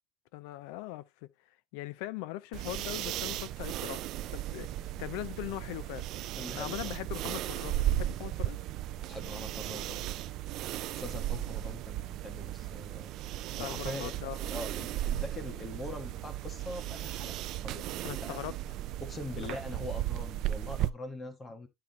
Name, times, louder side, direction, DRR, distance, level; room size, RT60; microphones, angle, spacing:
voice 1, 0.3-1.3 1.7-4.0 4.3-6.0 6.5-8.6 13.6-14.5 18.0-18.5 19.4-19.6, left 16 dB, 90° left, 0.6 m, -40 dB
sound 1, 2.5-20.9, right 13 dB, 55° right, 0.4 m, -36 dB
voice 2, 6.4-7.0 9.1-10.0 11.0-13.1 13.6-14.1 14.5-18.4 19.0-21.7, left 2 dB, 15° left, 1.5 m, -43 dB
10.0 x 3.6 x 4.2 m
cardioid pair, 150°, 0 cm